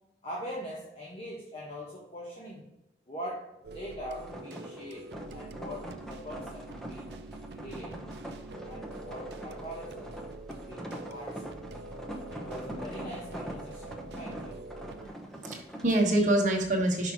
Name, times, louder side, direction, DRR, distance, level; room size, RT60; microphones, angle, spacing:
voice 1, 0.2-2.7 3.1-7.1 7.5-8.1 8.7-10.2 10.7-11.6 12.3-14.7, equal, 35° left, -2 dB, 1.1 m, -42 dB
sound 1, 3.6-15.1, right 2 dB, 70° right, 0.5 m, -45 dB
sound 2, 4.2-15.9, right 1 dB, 5° left, 0.8 m, -43 dB
voice 2, 15.0-17.1, right 1 dB, 45° right, 1 dB, 1.4 m, -26 dB
5.8 x 5.6 x 4.5 m, 0.93 s
head